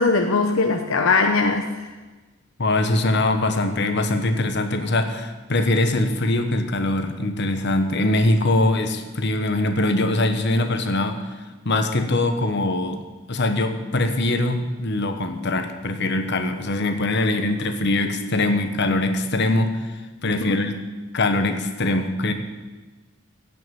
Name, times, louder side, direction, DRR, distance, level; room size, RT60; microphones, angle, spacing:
voice 1, 0.0-1.7 20.2-20.6, left 3 dB, 75° left, 5 dB, 0.8 m, -20 dB
voice 2, 2.6-11.2 11.6-13.0 13.3-19.9 20.2-20.8 21.1-22.3, left 2 dB, 55° left, 7 dB, 1.2 m, -22 dB
16.0 x 6.0 x 9.1 m, 1.2 s
head